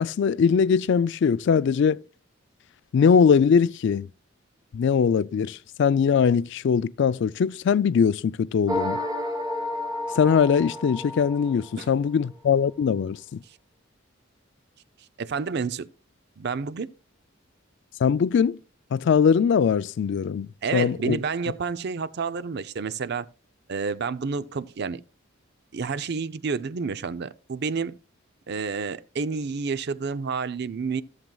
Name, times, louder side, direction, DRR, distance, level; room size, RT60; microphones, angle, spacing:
voice 1, 0.0-2.0 2.9-4.1 4.7-9.0 10.2-13.4 18.0-18.6 18.9-21.2, left 6 dB, 60° left, 0.3 m, -21 dB
sound 1, 8.7-12.1, left 1 dB, 20° right, 1.1 m, -31 dB
voice 2, 15.2-15.9 16.4-16.9 20.6-23.3 23.7-25.0 25.7-27.9 28.5-31.0, right 5 dB, 55° right, 0.5 m, -29 dB
15.0 x 7.4 x 2.3 m
head